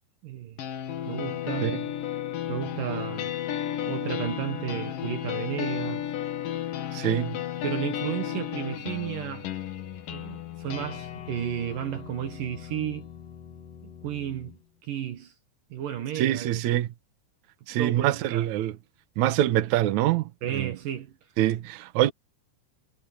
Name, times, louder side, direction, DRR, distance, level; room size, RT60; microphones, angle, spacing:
voice 1, 0.2-0.6 1.1-1.8 2.5-3.3 3.8-6.1 7.6-9.5 9.8-9.9 10.1-13.1 13.8-15.3 15.7-16.6 17.8-18.5 20.4-21.1, right 10 dB, 65° right, 2.6 m, -33 dB
sound 1, 0.6-14.6, left 11 dB, 60° left, 3.0 m, -34 dB
voice 2, 6.9-7.4 16.2-16.9 17.7-18.8 19.2-20.7 21.4-22.1, right 13 dB, 80° right, 1.7 m, -25 dB
omnidirectional pair, 5.0 m